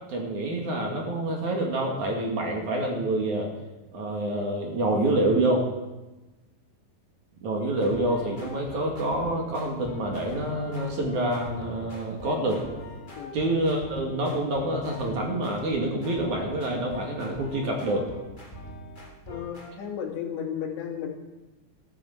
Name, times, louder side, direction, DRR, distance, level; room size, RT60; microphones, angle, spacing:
voice 1, 0.1-3.5 3.9-5.7 7.4-12.6 13.3-18.1, right 1 dB, 50° right, 0 dB, 3.1 m, -27 dB
sound 1, 7.8-19.7, left 1 dB, 20° left, 1.5 m, -43 dB
voice 2, 19.3-21.1, left 8 dB, 70° left, -1 dB, 4.3 m, -34 dB
14.5 x 14.0 x 7.1 m, 1.1 s
omnidirectional pair, 5.4 m